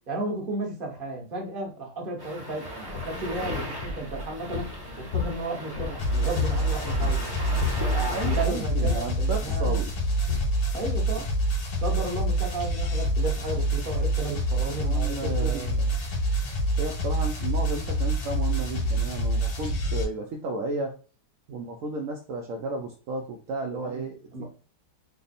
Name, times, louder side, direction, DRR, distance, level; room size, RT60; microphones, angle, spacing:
voice 1, 0.1-4.7 5.0-7.3 7.8-9.8 10.7-11.3 11.8-15.7 23.7-24.1 24.3-24.4, right 2 dB, 40° right, 1 dB, 0.9 m, -34 dB
sound 1, 2.2-8.4, equal, 25° right, 0.5 m, -37 dB
sound 2, 2.9-11.5, left 5 dB, 60° left, 0.9 m, -34 dB
sound 3, 6.0-20.0, right 1 dB, 85° left, 1.7 m, -27 dB
voice 2, 8.1-9.9 14.7-15.9 16.8-20.9 21.5-24.4, right 2 dB, 75° right, 2 dB, 0.7 m, -33 dB
3.4 x 2.0 x 4.0 m, 0.39 s
omnidirectional pair, 1.9 m